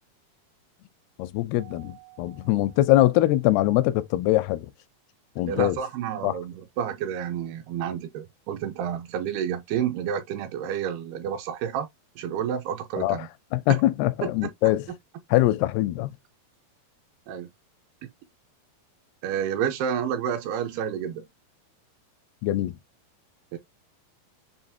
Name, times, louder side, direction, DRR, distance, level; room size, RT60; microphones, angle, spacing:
voice 1, 1.2-4.7 5.4-5.8 6.2-6.4 13.0-14.9 15.3-16.1 22.4-22.8, left 15 dB, 85° left, 2.5 m, -23 dB
Keyboard (musical), 1.6-3.8, right 16 dB, 45° right, 0.5 m, -54 dB
voice 2, 5.5-11.9 12.2-13.3 14.2-14.3 17.3-17.5 19.2-21.3 23.5-23.6, right 8 dB, 80° right, 2.7 m, -30 dB
7.3 x 2.5 x 2.7 m
omnidirectional pair, 4.7 m